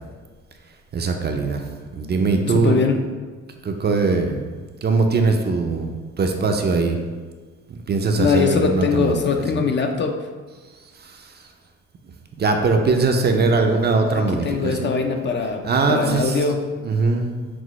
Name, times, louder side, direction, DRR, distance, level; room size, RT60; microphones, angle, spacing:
voice 1, 0.9-1.6 1.9-2.8 3.6-4.5 4.8-7.0 7.9-9.2 9.5-9.6 11.0-11.5 12.4-14.9 15.6-16.5 16.8-17.5, right 3 dB, 35° right, 4 dB, 0.4 m, -21 dB
voice 2, 2.5-3.0 8.2-10.3 14.3-16.6, left 5 dB, 40° left, 4 dB, 0.4 m, -22 dB
6.0 x 2.0 x 3.1 m, 1.4 s
cardioid pair, 90°, 30 cm